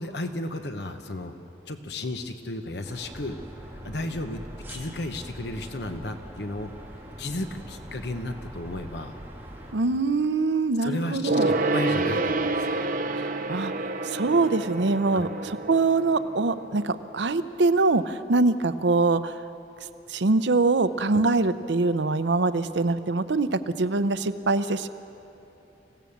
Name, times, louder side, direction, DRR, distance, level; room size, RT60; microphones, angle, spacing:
voice 1, 0.0-1.4 1.7-3.4 3.7-4.4 4.7-6.7 7.2-9.2 10.8-12.8 15.1-15.3 21.1-21.2, left 1 dB, 70° left, 7 dB, 1.1 m, -34 dB
sound 1, 2.8-9.7, equal, 10° right, 2.3 m, -42 dB
voice 2, 9.7-11.5 13.5-19.3 20.1-24.9, right 3 dB, 80° right, 12 dB, 0.7 m, -24 dB
Gong, 11.3-17.2 17.4-17.5, right 2 dB, 50° right, 0.9 m, -28 dB
25.5 x 16.5 x 7.2 m, 2.8 s
head